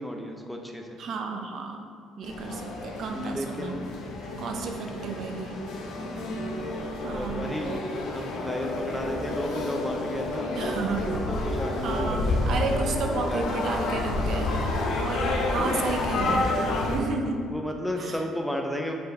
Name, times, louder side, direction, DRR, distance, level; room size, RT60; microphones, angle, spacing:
voice 1, 0.0-1.0 3.1-4.0 4.3-4.8 6.0-6.6 7.1-7.8 8.1-12.6 13.3-13.6 15.6-15.8 16.3-16.4 17.5-18.9, equal, 5° left, 2 dB, 0.6 m, -34 dB
voice 2, 1.0-1.9 2.2-3.8 4.4-5.6 7.0-7.5 10.5-11.1 11.8-16.5 16.9-17.5 18.0-18.3, right 4 dB, 60° right, 3 dB, 0.6 m, -32 dB
sound 1, 2.2-17.0, left 2 dB, 75° left, 0.9 m, -29 dB
5.2 x 4.4 x 4.7 m, 2.2 s
cardioid pair, 120°, 0 cm